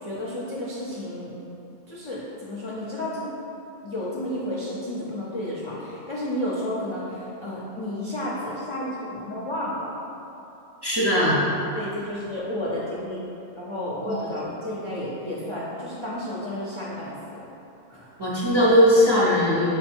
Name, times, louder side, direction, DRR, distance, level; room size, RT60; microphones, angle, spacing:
voice 1, 0.0-1.3 1.9-3.3 3.8-10.0 11.7-13.2 13.6-17.5 17.9-18.2, left 1 dB, 40° left, -8 dB, 0.4 m, -32 dB
voice 2, 10.8-11.4 14.1-14.2 18.2-19.8, left 1 dB, 30° right, -7 dB, 0.5 m, -19 dB
5.8 x 2.1 x 4.3 m, 3.0 s
omnidirectional pair, 1.3 m